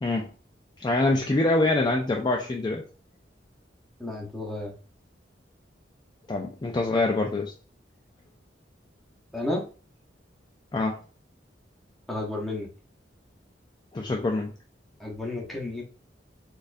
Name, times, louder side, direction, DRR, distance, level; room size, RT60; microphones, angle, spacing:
voice 1, 0.0-0.3 0.8-2.8 6.3-7.5 10.7-11.0 13.9-14.5, left 2 dB, 25° left, 1 dB, 0.4 m, -25 dB
voice 2, 4.0-4.7 9.3-9.6 12.1-12.7 15.0-15.8, left 2 dB, ahead, -2 dB, 0.9 m, -32 dB
4.1 x 2.5 x 2.5 m, 0.36 s
head